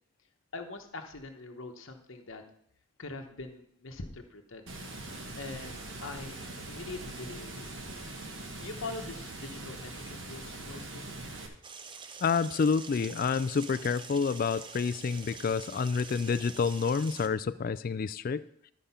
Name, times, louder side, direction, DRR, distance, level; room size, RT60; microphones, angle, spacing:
voice 1, 0.5-2.4 3.0-4.7 5.4-6.3 6.7-7.6 8.6-11.1, left 3 dB, 65° left, 4 dB, 1.1 m, -43 dB
Water, 4.7-11.5, right 2 dB, 60° right, 1.5 m, -42 dB
sound 1, 11.6-17.3, right 5 dB, 25° right, 0.5 m, -46 dB
voice 2, 12.2-18.5, left 5 dB, 40° left, 15 dB, 0.3 m, -29 dB
12.0 x 5.1 x 5.7 m, 0.68 s
head